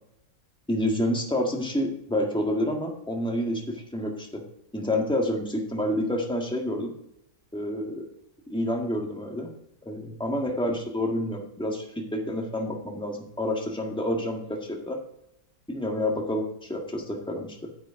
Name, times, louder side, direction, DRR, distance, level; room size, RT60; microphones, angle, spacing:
voice 1, 0.7-4.4 4.7-6.9 7.5-8.0 8.5-9.5 9.8-15.0 15.7-16.4 16.7-17.7, left 1 dB, 5° left, 1 dB, 1.5 m, -28 dB
9.4 x 8.1 x 3.6 m, 0.79 s
omnidirectional pair, 1.7 m